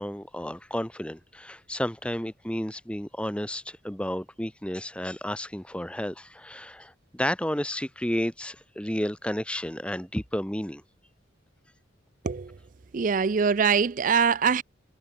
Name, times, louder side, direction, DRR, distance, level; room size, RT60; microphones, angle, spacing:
voice 1, 0.0-10.8, equal, 5° left, 1.4 m, -32 dB
voice 2, 12.2-12.5 12.9-14.6, right 6 dB, 45° right, 0.4 m, -23 dB
head